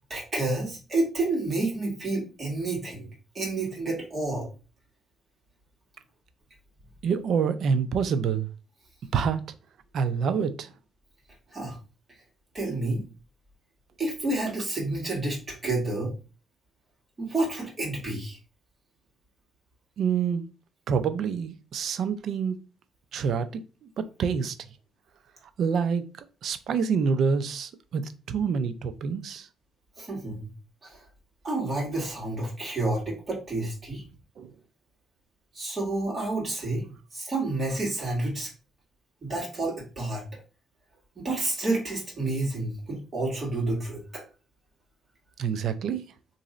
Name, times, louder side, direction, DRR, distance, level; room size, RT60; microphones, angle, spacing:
voice 1, 0.1-3.1 3.3-4.5 11.5-11.8 12.5-13.1 14.0-16.1 17.2-18.4 30.0-30.5 30.8-31.0 31.4-34.0 35.5-36.8 37.1-38.5 39.2-40.4 41.2-44.2, right 2 dB, 40° right, 1.8 m, -29 dB
voice 2, 7.0-8.5 9.1-9.4 9.9-10.7 20.0-20.5 20.9-22.6 23.1-24.6 25.6-26.1 26.4-29.5 34.4-34.5 45.4-46.0, right 6 dB, 70° right, 0.5 m, -27 dB
3.0 x 2.7 x 3.7 m
cardioid pair, 90°, 0 cm